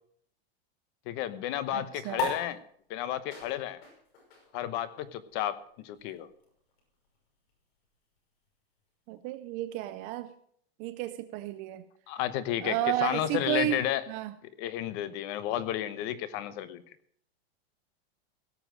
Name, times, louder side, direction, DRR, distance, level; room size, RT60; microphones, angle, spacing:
voice 1, 1.1-2.6 2.9-3.8 4.5-6.3 12.1-14.0 14.6-16.8, left 12 dB, 35° left, 14 dB, 0.9 m, -32 dB
voice 2, 1.7-2.3 9.1-10.3 10.8-11.8 12.6-14.3, right 14 dB, 25° right, 12 dB, 0.4 m, -32 dB
sound 1, 2.1-9.0, left 2 dB, 75° left, 5.9 m, -41 dB
17.5 x 7.2 x 6.2 m, 0.64 s
supercardioid pair, 155°, 31 cm